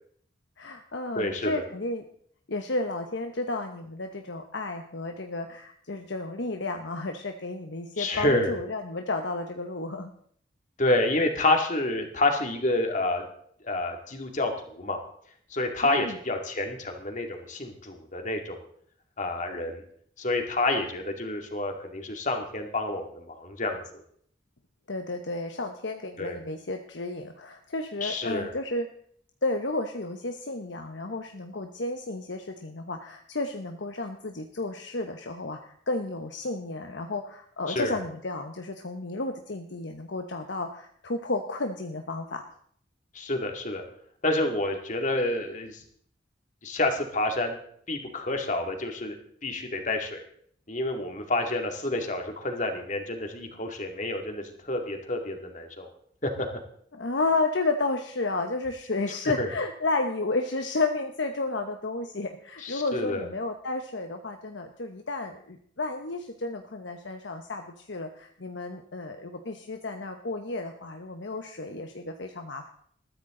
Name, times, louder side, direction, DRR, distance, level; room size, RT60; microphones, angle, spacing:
voice 1, 0.6-2.0 2.5-10.1 15.8-16.2 24.9-28.9 29.4-42.4 56.9-72.7, left 2 dB, 65° left, 5 dB, 1.0 m, -32 dB
voice 2, 1.2-1.6 8.0-8.5 10.8-13.2 13.6-15.0 15.5-18.6 19.2-19.8 20.2-23.8 26.2-26.4 28.0-28.5 37.7-38.0 43.1-43.8 44.2-45.8 46.6-47.6 47.9-49.2 49.4-50.2 50.7-55.9 56.2-56.5 59.4-59.5 62.6-63.3, left 2 dB, 40° left, 4 dB, 2.4 m, -28 dB
20.5 x 14.0 x 3.9 m, 0.62 s
head